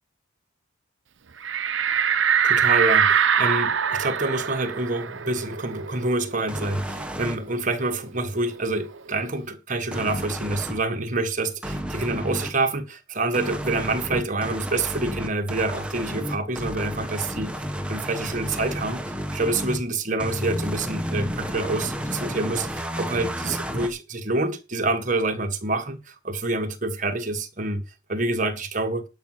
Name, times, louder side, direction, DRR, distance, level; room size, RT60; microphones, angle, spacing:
sound 1, 1.4-6.6 7.0-7.1 7.4-9.1, right 7 dB, 65° right, 0.8 m, -23 dB
voice 1, 2.4-27.8 28.1-29.1, right 2 dB, 40° right, 1.5 m, -27 dB
sound 2, 6.5-7.4 9.9-10.8 11.6-12.5 13.3-19.8 20.2-23.9, equal, 5° right, 1.3 m, -31 dB
11.5 x 6.0 x 6.3 m
head